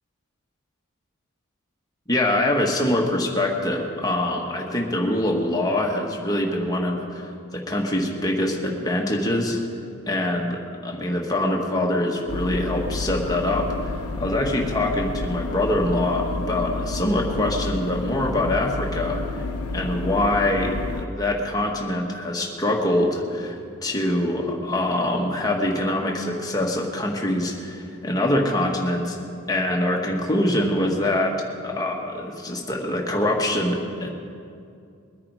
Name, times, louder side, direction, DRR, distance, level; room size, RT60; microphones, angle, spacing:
voice 1, 2.1-9.6 10.1-19.4 19.7-29.2 29.5-31.3 31.6-34.1, left 1 dB, 15° left, 0 dB, 1.6 m, -24 dB
sound 1, 12.3-21.1, left 3 dB, 85° left, 0.9 m, -30 dB
22.0 x 9.9 x 4.8 m, 2.4 s
head